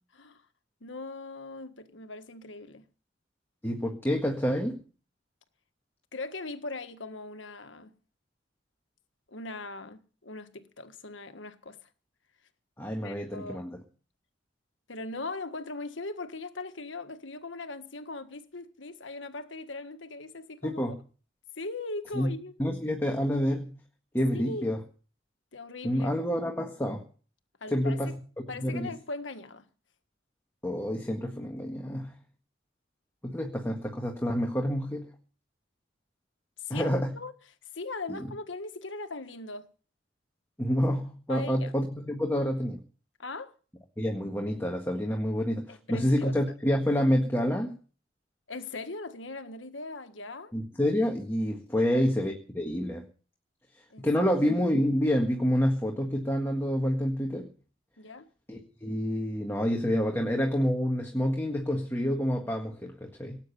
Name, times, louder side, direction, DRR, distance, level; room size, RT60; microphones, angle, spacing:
voice 1, 0.8-2.8 6.1-7.9 9.3-11.8 13.0-13.7 14.9-20.9 21.6-22.5 24.3-24.7 25.5-26.1 27.6-28.1 28.5-29.7 36.6-37.3 37.7-39.7 41.3-41.7 43.2-43.5 45.7-46.3 48.5-50.5 51.8-51.9 53.9-54.0 58.0-58.3, left 3 dB, 80° left, 1.6 m, -40 dB
voice 2, 3.6-4.8 12.8-13.8 20.6-21.0 22.2-22.3 22.6-23.7 24.1-24.8 25.8-27.0 27.7-28.2 28.6-28.9 30.6-32.1 33.2-35.1 36.7-37.2 38.1-38.3 40.6-42.8 44.0-47.8 50.5-53.1 54.0-57.5 58.5-63.4, equal, 10° left, 1.7 m, -28 dB
18.5 x 9.0 x 7.0 m
head